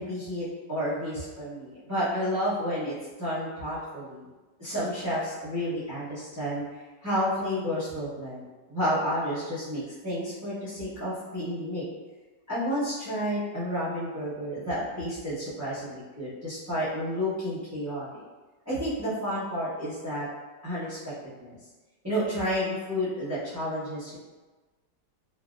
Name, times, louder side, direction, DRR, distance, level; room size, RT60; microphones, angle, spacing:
voice 1, 0.0-4.2 4.6-6.6 7.0-11.8 12.5-18.2 18.7-20.3 20.6-21.0 21.4-21.5 22.0-24.2, equal, 20° right, -14 dB, 0.5 m, -31 dB
3.4 x 2.2 x 2.4 m, 1.2 s
omnidirectional pair, 1.9 m